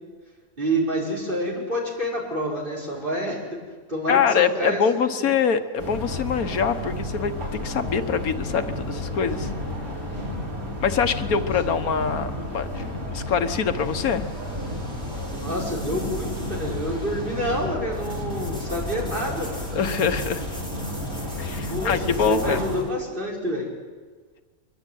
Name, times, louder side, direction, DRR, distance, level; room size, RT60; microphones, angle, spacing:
voice 1, 0.6-3.6 3.9-5.3 9.9-10.3 11.6-11.9 15.2-19.7 21.7-23.7, equal, 35° right, -2 dB, 6.0 m, -28 dB
voice 2, 4.1-9.5 10.8-14.3 19.7-20.4 21.4-22.6, left 6 dB, 85° left, 9 dB, 1.6 m, -24 dB
sound 1, 5.8-22.8, left 1 dB, 75° right, 6.2 m, -31 dB
sound 2, 13.5-22.9, left 1 dB, 5° left, 4.8 m, -43 dB
23.5 x 23.0 x 9.3 m, 1.5 s
omnidirectional pair, 1.5 m